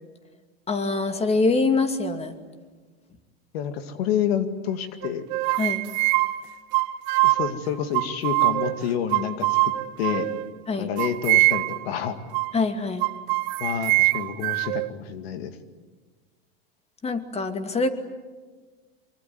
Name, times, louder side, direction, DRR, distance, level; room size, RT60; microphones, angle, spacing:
voice 1, 0.7-2.3 5.6-5.9 10.7-10.9 12.5-13.1 17.0-17.9, left 3 dB, 20° left, 8 dB, 2.5 m, -24 dB
voice 2, 3.5-5.3 7.2-9.7 10.0-10.3 10.8-12.2 13.6-15.5, left 9 dB, 80° left, 9 dB, 2.3 m, -28 dB
sound 1, 5.0-7.5 7.9-8.8 9.1-10.5 11.0-11.9 12.3-12.6 13.0-14.9, right 21 dB, 60° right, 1.0 m, -23 dB
25.0 x 24.0 x 9.5 m, 1.4 s
supercardioid pair, 115°, 30 cm